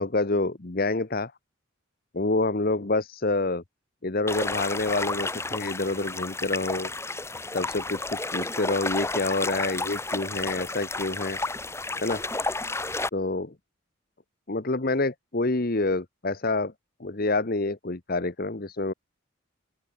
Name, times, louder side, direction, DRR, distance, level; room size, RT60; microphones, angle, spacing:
voice 1, 0.0-1.3 2.1-3.6 4.0-6.9 7.5-11.4 12.0-12.2 13.1-13.5 14.5-16.7 17.0-18.9, left 2 dB, 45° left, 1.1 m, -27 dB
sound 1, 4.3-13.1, left 2 dB, 15° left, 1.7 m, -31 dB
open air
head